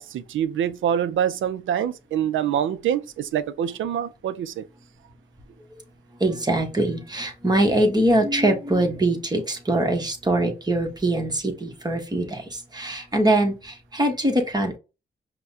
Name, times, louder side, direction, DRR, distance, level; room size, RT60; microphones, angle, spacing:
voice 1, 0.0-4.6, right 9 dB, 75° right, 0.5 m, -25 dB
voice 2, 6.2-14.8, right 1 dB, 20° right, 1.2 m, -23 dB
5.4 x 2.2 x 2.7 m
cardioid pair, 65°, 20 cm